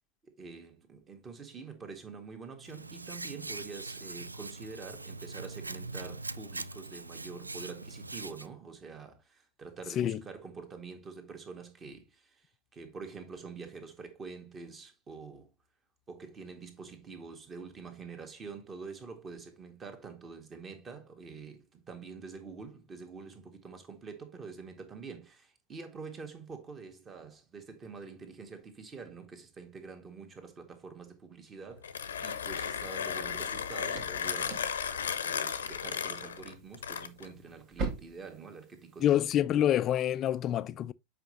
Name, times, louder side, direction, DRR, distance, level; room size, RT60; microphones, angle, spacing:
voice 1, 0.2-15.5 16.1-32.0 32.2-34.6 35.0-39.3, right 5 dB, 20° right, 1.7 m, -46 dB
Hands, 2.6-8.5, right 3 dB, 80° right, 0.4 m, -42 dB
Mechanisms, 31.7-37.4, left 7 dB, 65° left, 0.8 m, -35 dB
sound 1, 32.2-39.4, right 4 dB, 40° right, 1.6 m, -44 dB
voice 2, 39.0-40.9, left 11 dB, 30° left, 0.4 m, -27 dB
7.9 x 5.1 x 3.1 m
figure-of-eight pair, 90°, 0 cm